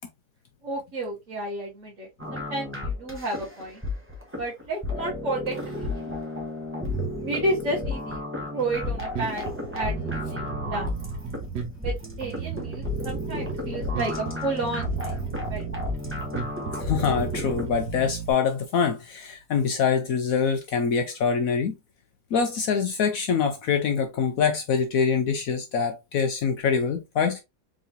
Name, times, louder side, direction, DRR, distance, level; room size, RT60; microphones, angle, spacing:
voice 1, 0.6-3.8 4.4-6.1 7.2-8.2 8.5-10.9 11.8-15.2 15.5-15.7, right 2 dB, 50° right, 1.7 m, -31 dB
sound 1, 2.2-17.7, left 2 dB, 10° right, 1.1 m, -32 dB
Bass guitar, 8.7-18.3, right 7 dB, 80° right, 1.5 m, -35 dB
voice 2, 16.7-21.7 22.3-27.4, left 6 dB, 65° left, 1.0 m, -24 dB
4.0 x 3.6 x 2.7 m
omnidirectional pair, 1.7 m